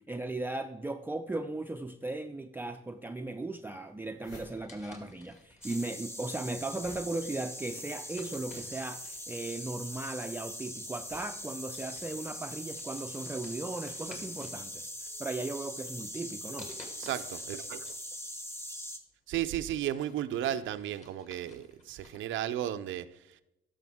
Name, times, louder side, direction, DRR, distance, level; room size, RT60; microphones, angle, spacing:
voice 1, 0.0-16.7, right 2 dB, 10° right, 0.4 m, -37 dB
sound 1, 2.9-3.0 3.6-3.7 3.9-5.4 5.7-12.3, left 1 dB, 80° left, 3.5 m, -55 dB
sound 2, 4.5-6.2 6.9-7.1 8.1-9.7 10.8-10.9 11.3-11.5 11.7-14.6 15.0-15.7 16.6-18.0 18.4-18.5 19.0-22.3, left 2 dB, 35° left, 2.2 m, -54 dB
sound 3, 5.6-19.0, equal, 10° left, 1.1 m, -42 dB
voice 2, 17.0-17.9 19.3-23.4, right 11 dB, 75° right, 0.5 m, -34 dB
12.0 x 6.5 x 3.5 m
cardioid pair, 90°, 20 cm